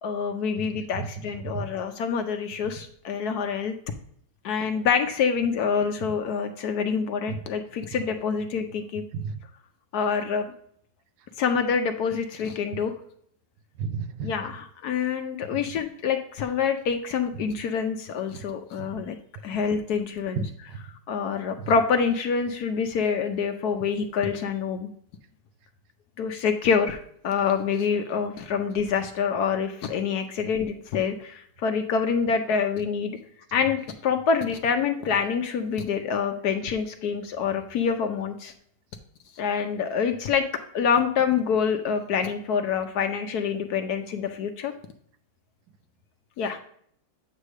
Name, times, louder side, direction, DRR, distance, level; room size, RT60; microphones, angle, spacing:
voice 1, 0.0-3.7 4.4-9.0 9.9-10.4 11.4-12.9 14.2-19.2 19.4-20.4 21.1-24.9 26.2-27.0 27.2-33.2 33.5-38.5 39.4-40.4 40.7-44.7 46.4-46.6, left 6 dB, 65° left, 7 dB, 1.0 m, -26 dB
voice 2, 1.0-1.7 7.3-7.4 9.1-9.4 13.8-14.3 18.4-18.5 18.8-19.0 20.4-20.8, right 5 dB, 80° right, 10 dB, 1.4 m, -33 dB
8.3 x 3.2 x 6.3 m, 0.64 s
omnidirectional pair, 2.1 m